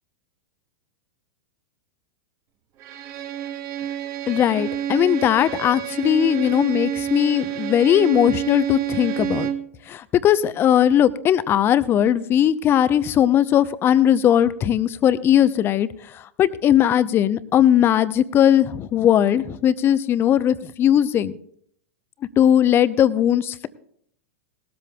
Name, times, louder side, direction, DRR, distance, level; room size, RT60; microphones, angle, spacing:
Bowed string instrument, 2.8-9.7, right 10 dB, 40° right, 1.1 m, -29 dB
voice 1, 4.3-9.5 9.9-15.9 16.1-21.3 22.4-23.7, left 10 dB, 30° left, 15 dB, 0.7 m, -19 dB
19.0 x 13.0 x 2.3 m, 0.65 s
hypercardioid pair, 95°, 8 cm